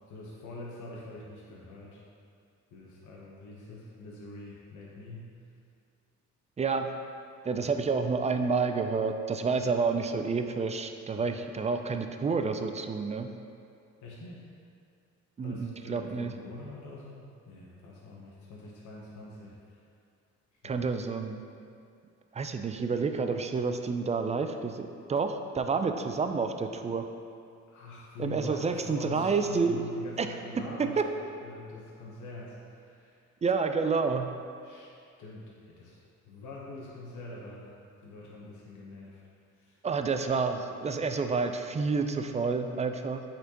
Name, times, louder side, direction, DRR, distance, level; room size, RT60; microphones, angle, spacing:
voice 1, 0.1-2.0 2.7-5.3 7.5-7.7 11.1-11.2 14.0-14.4 15.4-19.8 20.6-20.8 27.7-33.2 34.6-34.9 35.2-37.7 38.0-39.2 39.5-39.8, left 2 dB, 75° left, -5 dB, 1.0 m, -44 dB
voice 2, 6.6-6.9 7.4-13.3 15.4-16.3 20.6-21.4 22.3-27.1 28.2-29.8 30.2-30.3 30.8-31.0 33.4-34.3 39.8-43.2, right 4 dB, 25° right, 7 dB, 0.4 m, -29 dB
7.9 x 4.3 x 2.9 m, 2.4 s
cardioid pair, 90°, 30 cm